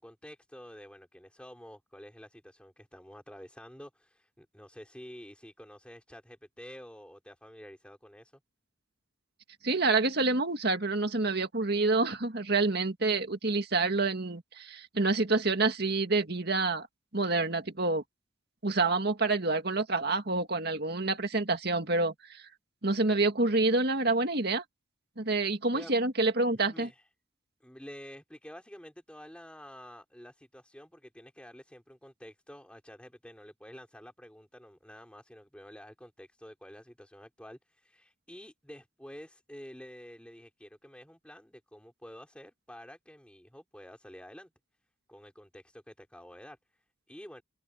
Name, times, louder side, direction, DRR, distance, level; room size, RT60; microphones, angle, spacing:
voice 1, 0.0-8.4 25.7-25.9 26.7-27.1 27.6-44.5 45.1-47.4, equal, 5° left, 4.8 m, -49 dB
voice 2, 9.6-16.9 17.1-18.0 18.6-22.4 22.8-24.6 25.2-26.9, right 3 dB, 55° right, 2.1 m, -27 dB
head